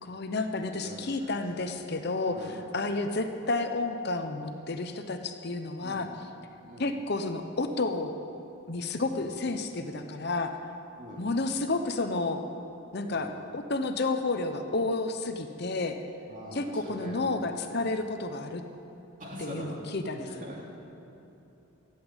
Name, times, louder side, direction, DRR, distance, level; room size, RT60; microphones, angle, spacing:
voice 1, 0.0-6.1 6.8-8.1 8.7-10.6 11.2-12.4 12.9-16.0 16.5-18.6 19.4-20.4, left 3 dB, 50° left, 6 dB, 0.8 m, -31 dB
voice 2, 0.7-1.3 2.3-2.6 5.8-6.1 6.7-6.9 9.1-9.3 11.0-11.2 13.1-13.4 16.3-17.4 19.2-19.8 20.2-20.7, equal, 35° right, -3 dB, 2.9 m, -43 dB
15.0 x 8.1 x 9.7 m, 3.0 s
head